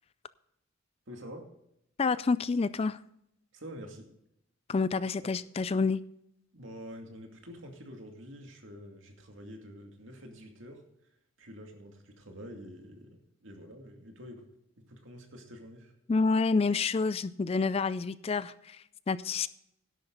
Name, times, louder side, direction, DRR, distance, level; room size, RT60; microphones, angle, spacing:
voice 1, 1.1-1.5 3.5-4.1 5.2-5.3 6.5-10.8 11.4-14.4 14.8-16.0, equal, 65° right, 2.4 m, -47 dB
voice 2, 2.0-3.0 4.7-6.0 16.1-19.5, left 4 dB, 30° left, 0.3 m, -28 dB
12.5 x 11.0 x 3.9 m
head